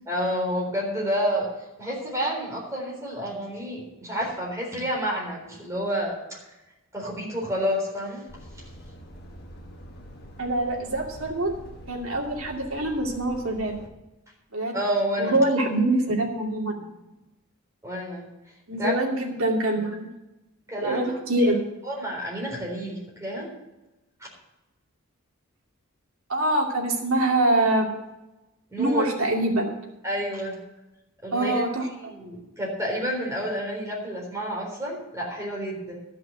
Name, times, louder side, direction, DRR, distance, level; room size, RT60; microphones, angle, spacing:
voice 1, 0.1-6.4 6.9-8.2 14.7-15.4 17.8-18.3 18.8-18.9 20.7-21.5 21.8-23.5 24.2-24.3 28.7-29.0 30.0-30.6 31.2-31.6 32.0-36.0, equal, 15° right, -3 dB, 3.9 m, -29 dB
Truck, 8.3-13.9, equal, 45° left, 1.5 m, -45 dB
voice 2, 10.4-11.5 11.9-13.8 14.5-14.8 15.2-16.9 18.7-20.1 20.8-21.6 26.3-27.9 28.8-29.7 31.3-32.1, right 1 dB, 70° right, 0 dB, 2.5 m, -24 dB
13.0 x 5.8 x 8.9 m, 0.99 s
head